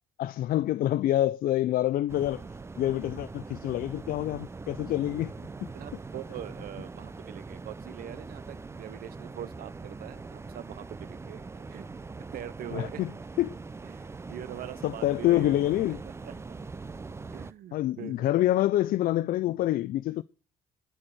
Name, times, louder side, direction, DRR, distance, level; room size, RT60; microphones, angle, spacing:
voice 1, 0.2-2.4 2.8-5.3 5.6-5.7 12.7-13.6 14.8-16.0 17.7-20.2, left 14 dB, 60° left, 0.4 m, -27 dB
sound 1, 2.1-17.5, right 4 dB, 15° right, 0.5 m, -42 dB
voice 2, 5.7-11.9 12.3-13.0 13.8-15.6 15.9-16.6 17.3-18.3, right 11 dB, 60° right, 0.8 m, -43 dB
13.0 x 4.5 x 6.4 m
cardioid pair, 110°, 17 cm